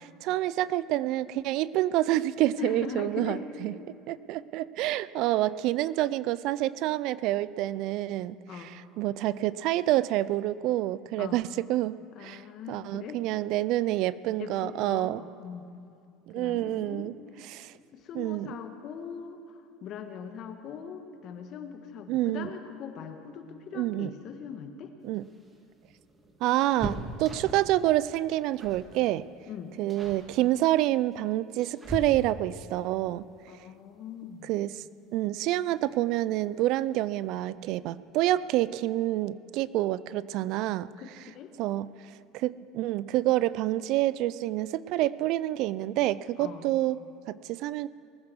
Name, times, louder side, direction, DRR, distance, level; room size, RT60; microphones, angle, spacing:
voice 1, 0.0-3.7 4.1-12.4 12.7-15.2 16.3-17.1 17.5-17.7 18.1-18.6 22.1-22.5 23.7-24.1 25.0-25.3 26.4-29.3 29.8-33.2 34.4-34.8 35.1-40.9 41.6-41.9 42.3-47.0 47.3-47.9, right 15 dB, 65° right, 18 dB, 0.3 m, -28 dB
voice 2, 2.6-3.8 8.5-8.8 11.2-11.4 12.1-13.2 14.4-15.7 16.3-17.2 17.9-24.9 29.5-29.7 33.5-34.5 41.0-41.5 46.4-46.7, left 7 dB, 50° left, 6 dB, 1.5 m, -41 dB
sound 1, 25.1-27.8 28.6-28.9 29.2-29.5 29.9-30.3 31.1-32.6 34.3-34.4 34.8-34.9 36.1-36.5 36.8-36.9 37.2-37.4, equal, 20° right, 1.7 m, -40 dB
19.5 x 9.6 x 6.3 m, 2.5 s
supercardioid pair, 110°, 0 cm